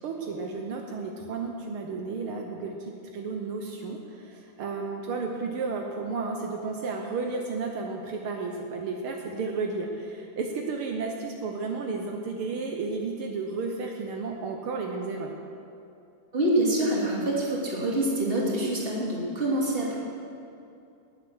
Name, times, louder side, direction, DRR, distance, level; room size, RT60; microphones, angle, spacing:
voice 1, 0.0-2.7 3.1-15.3, right 4 dB, 80° right, 2 dB, 1.2 m, -32 dB
voice 2, 16.3-20.0, right 1 dB, 20° right, -4 dB, 2.3 m, -26 dB
19.0 x 7.8 x 6.2 m, 2.7 s
omnidirectional pair, 3.7 m